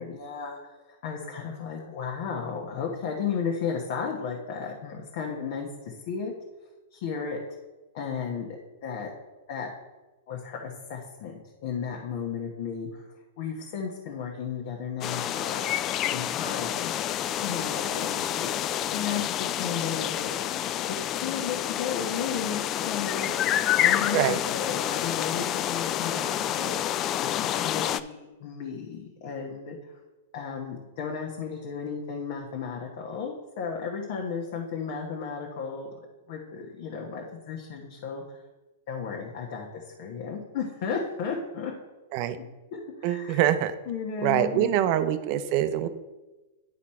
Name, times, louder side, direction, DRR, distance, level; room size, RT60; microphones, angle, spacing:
voice 1, 0.0-6.3 6.9-7.4 7.9-8.5 8.8-9.1 9.5-9.7 10.3-11.3 11.6-13.0 13.4-15.6 16.0-20.3 20.9-23.3 23.8-30.0 30.3-35.9 36.3-38.4 38.9-41.7 42.7-43.4 43.9-44.7, left 6 dB, 55° left, -1 dB, 1.2 m, -34 dB
sound 1, 15.0-28.0, left 11 dB, 30° left, 0.3 m, -28 dB
voice 2, 43.0-43.7 44.2-45.9, right 11 dB, 50° right, 11 dB, 0.6 m, -24 dB
10.5 x 4.1 x 4.3 m, 1.1 s
hypercardioid pair, 125°, 0 cm